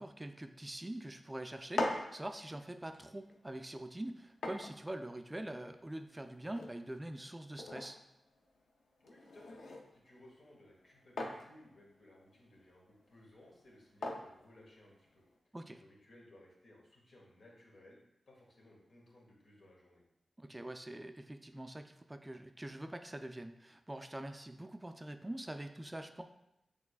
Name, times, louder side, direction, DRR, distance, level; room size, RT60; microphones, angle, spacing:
voice 1, 0.0-8.0 15.5-15.8 20.4-26.2, right 1 dB, 20° right, 7 dB, 0.3 m, -44 dB
sound 1, 1.5-15.4, left 2 dB, 85° left, 0.5 m, -45 dB
voice 2, 9.0-9.6 9.9-18.0 18.3-20.0, left 1 dB, 70° left, -3 dB, 1.4 m, -60 dB
6.1 x 3.4 x 2.3 m, 0.84 s
cardioid pair, 45°, 0 cm